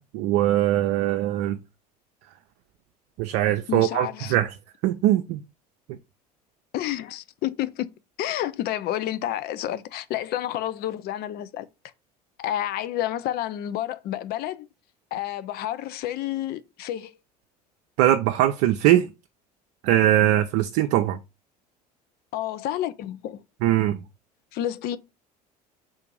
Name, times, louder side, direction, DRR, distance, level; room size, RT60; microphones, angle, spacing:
voice 1, 0.0-1.6 3.2-4.5 4.8-5.4 5.9-6.0 18.0-19.1 19.8-21.2 23.6-24.0, right 13 dB, 65° right, 0.4 m, -21 dB
voice 2, 3.7-4.4 6.7-7.9 8.2-11.7 12.4-14.7 15.1-17.1 22.3-23.4 24.5-25.0, left 12 dB, 50° left, 0.5 m, -30 dB
3.7 x 2.5 x 4.6 m
hypercardioid pair, 70°, 20 cm